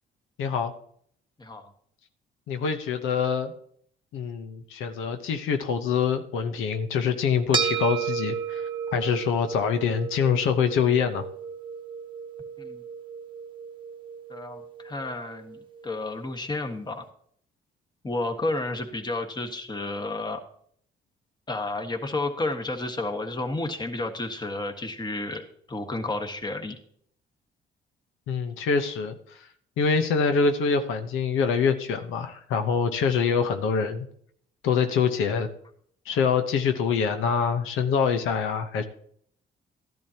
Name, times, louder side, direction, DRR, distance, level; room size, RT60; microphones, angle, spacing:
voice 1, 0.4-0.7 2.5-3.5 4.1-8.6 8.9-11.3 28.3-29.2 29.8-34.1 34.6-35.5 36.1-38.8, left 6 dB, 90° left, 8 dB, 0.9 m, -25 dB
voice 2, 1.4-1.7 12.6-12.8 14.3-15.6 15.8-17.0 18.0-20.4 21.5-26.8, left 2 dB, 20° left, 5 dB, 1.5 m, -31 dB
sound 1, 7.5-16.1, right 6 dB, 25° right, 1.0 m, -33 dB
13.5 x 10.5 x 2.9 m, 0.64 s
cardioid pair, 90°, 20 cm